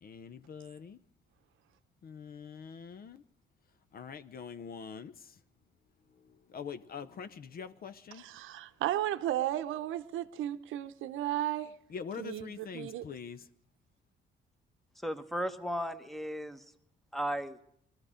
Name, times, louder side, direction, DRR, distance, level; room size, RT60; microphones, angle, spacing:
voice 1, 0.0-1.0 2.0-3.2 3.9-5.4 6.2-8.2 11.9-13.5, left 6 dB, 50° left, 0.6 m, -44 dB
voice 2, 8.2-11.7 12.2-13.0, right 12 dB, 85° right, 0.8 m, -34 dB
voice 3, 15.0-16.6 17.1-17.6, equal, ahead, 1.1 m, -35 dB
21.0 x 13.5 x 5.0 m
cardioid pair, 90°, 20 cm